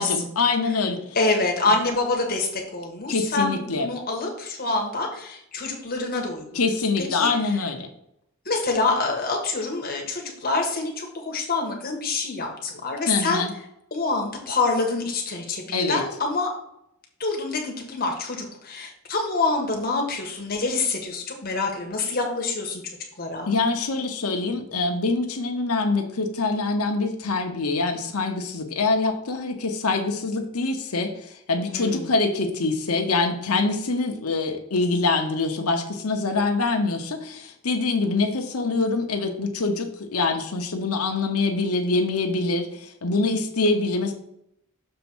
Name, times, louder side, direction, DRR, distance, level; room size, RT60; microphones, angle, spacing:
voice 1, 0.0-1.2 3.1-3.9 6.5-7.9 13.1-13.5 15.7-16.0 23.5-44.1, left 3 dB, 90° left, 3 dB, 1.0 m, -24 dB
voice 2, 1.1-6.4 7.1-7.3 8.4-13.4 13.9-16.5 17.2-22.8 23.2-23.5 31.7-32.1, left 3 dB, 45° left, 1 dB, 1.6 m, -26 dB
6.8 x 3.5 x 6.1 m, 0.77 s
head